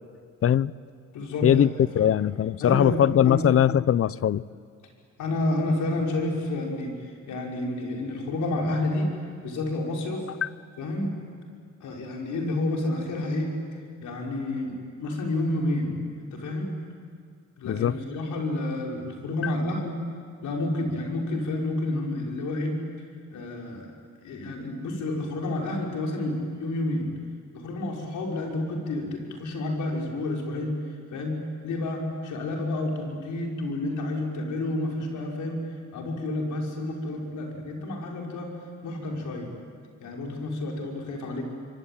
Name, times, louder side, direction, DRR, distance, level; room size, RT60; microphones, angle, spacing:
voice 1, 0.4-0.7 1.4-1.7 1.9-4.4 10.4-10.5 17.7-17.9, left 10 dB, 50° left, 19 dB, 0.7 m, -21 dB
voice 2, 1.1-1.6 1.9-2.1 2.6-3.0 3.2-3.4 5.2-9.1 9.4-10.3 10.8-11.2 11.8-13.5 14.0-16.8 17.6-20.0 20.4-22.8 23.3-23.9 24.2-27.1 27.5-30.7 31.1-31.4 31.6-35.6 35.9-38.5 38.8-39.5 40.0-41.4, left 2 dB, 80° left, 0 dB, 6.1 m, -30 dB
27.5 x 23.5 x 9.1 m, 2.1 s
cardioid pair, 90°, 30 cm